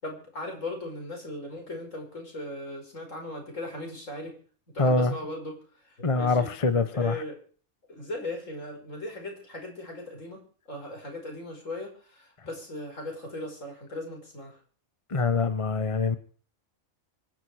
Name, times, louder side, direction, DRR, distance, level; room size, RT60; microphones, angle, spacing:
voice 1, 0.0-4.4 4.7-6.5 6.9-7.4 7.9-10.4 10.7-14.6, left 1 dB, 65° left, 5.9 m, -38 dB
voice 2, 4.8-5.1 6.0-7.1 15.1-16.2, left 3 dB, 25° left, 1.1 m, -24 dB
25.0 x 10.5 x 4.9 m
omnidirectional pair, 1.4 m